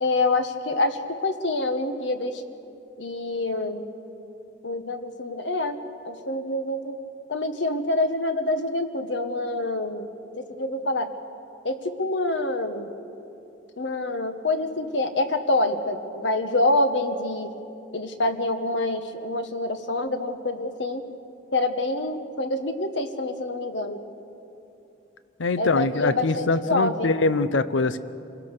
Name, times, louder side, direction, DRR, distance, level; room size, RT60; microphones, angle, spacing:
voice 1, 0.0-2.4 3.0-3.8 4.6-5.8 6.0-7.0 7.3-10.1 10.4-11.1 11.6-12.9 13.8-17.5 17.9-21.0 21.5-24.0 25.6-27.1, left 2 dB, 70° left, 8 dB, 1.3 m, -26 dB
voice 2, 25.4-28.0, left 3 dB, 90° left, 14 dB, 0.7 m, -23 dB
26.5 x 17.5 x 6.7 m, 2.7 s
head